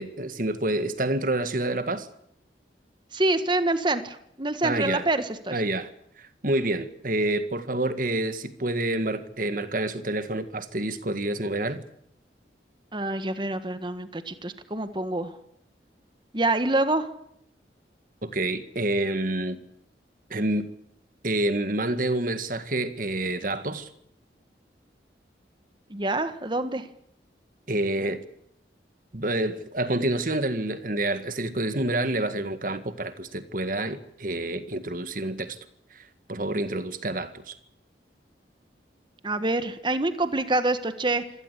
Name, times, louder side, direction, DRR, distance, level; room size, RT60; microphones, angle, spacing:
voice 1, 0.0-2.1 4.6-5.1 5.5-5.9 6.2-11.8 18.2-19.6 20.3-20.7 21.2-23.9 27.7-28.2 29.1-35.6 35.9-37.6, right 1 dB, 50° right, 1.8 m, -28 dB
voice 2, 3.1-5.6 12.9-15.3 16.3-17.1 25.9-26.9 39.2-41.2, right 2 dB, 25° right, 1.6 m, -26 dB
26.0 x 17.5 x 8.4 m
head